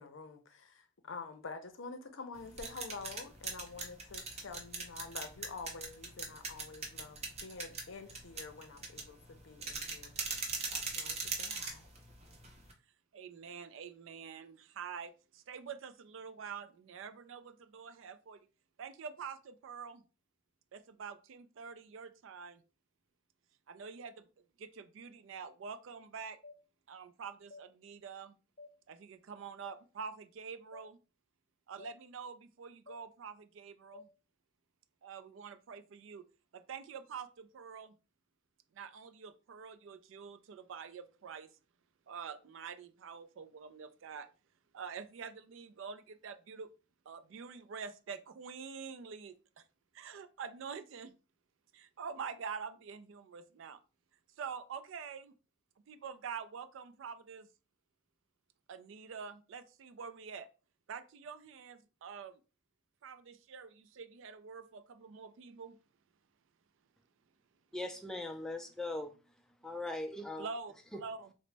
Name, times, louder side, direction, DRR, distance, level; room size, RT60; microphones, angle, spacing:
voice 1, 0.0-10.4 10.7-11.9, left 4 dB, 65° left, 0.6 m, -48 dB
sound 1, 2.3-12.7, right 4 dB, 30° right, 0.7 m, -41 dB
voice 2, 13.1-18.5 18.8-20.0 20.7-22.6 23.7-24.3 24.6-26.4 26.9-28.3 28.9-31.0 31.7-34.1 35.0-36.3 36.5-38.0 38.7-41.6 42.1-44.3 44.7-46.7 47.1-49.6 49.9-51.2 51.7-53.8 54.4-55.3 55.9-57.5 58.7-60.5 60.9-62.4 63.0-65.8 70.4-71.3, right 6 dB, 65° right, 0.4 m, -46 dB
sound 2, 26.4-26.6 27.5-27.7 28.6-28.7 29.6-29.8 30.7-30.9 31.8-31.9 32.9-33.0 33.9-34.1, left 3 dB, 40° left, 0.9 m, -52 dB
voice 3, 67.7-69.2 69.6-70.5, left 2 dB, 5° left, 0.4 m, -39 dB
3.8 x 2.1 x 3.3 m
head